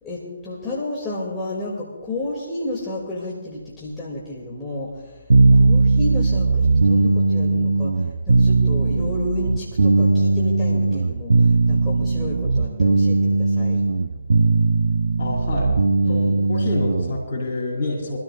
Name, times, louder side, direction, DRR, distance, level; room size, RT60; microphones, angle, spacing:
voice 1, 0.0-5.2 5.5-13.8 16.0-16.4, left 2 dB, 15° left, -6 dB, 2.4 m, -32 dB
sound 1, 5.3-17.2, right 3 dB, 70° right, 0.7 m, -18 dB
voice 2, 15.2-15.7 16.1-18.2, left 2 dB, 50° left, 0 dB, 4.9 m, -27 dB
24.5 x 13.0 x 2.4 m, 1.2 s
figure-of-eight pair, 140°, 0 cm